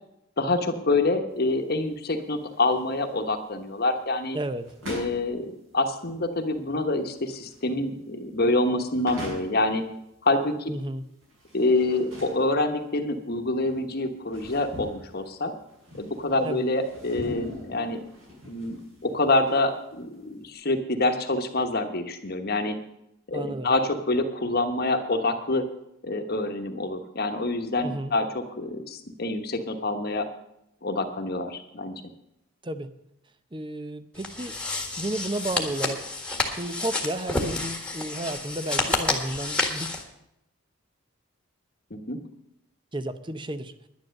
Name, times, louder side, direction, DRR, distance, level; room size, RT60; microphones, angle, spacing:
voice 1, 0.4-4.4 4.9-9.8 10.2-10.7 11.5-15.5 16.0-18.0 18.4-22.8 23.3-25.7 26.0-30.3 30.8-32.0 41.9-42.2, left 2 dB, 45° left, 6 dB, 1.2 m, -26 dB
sound 1, 1.3-20.5, left 1 dB, 65° right, 6.5 m, -44 dB
voice 2, 4.3-4.7 10.7-11.0 16.4-16.6 23.3-23.7 27.8-28.1 32.6-32.9 33.5-34.6 35.0-36.0 36.5-39.9 42.9-43.7, right 1 dB, 20° right, 11 dB, 0.7 m, -32 dB
sound 2, 34.2-40.0, left 2 dB, 5° left, 1.5 m, -29 dB
10.5 x 10.5 x 6.5 m, 0.82 s
head